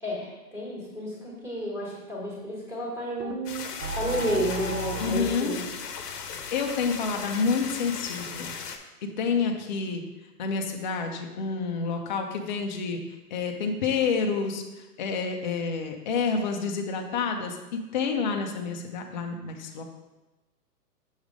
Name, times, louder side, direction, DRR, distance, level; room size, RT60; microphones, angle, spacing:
voice 1, 0.0-3.3 3.9-5.6, equal, 5° right, -5 dB, 1.3 m, -31 dB
sound 1, 3.2-5.3, right 4 dB, 85° right, 0.9 m, -34 dB
sound 2, 3.5-8.8, left 6 dB, 80° left, 0.9 m, -37 dB
voice 2, 5.0-5.5 6.2-8.5 9.0-10.0 10.4-13.0 13.3-14.6 15.0-19.8, left 5 dB, 30° left, 3 dB, 0.5 m, -29 dB
6.3 x 3.3 x 5.0 m, 1.1 s
hypercardioid pair, 145°, 47 cm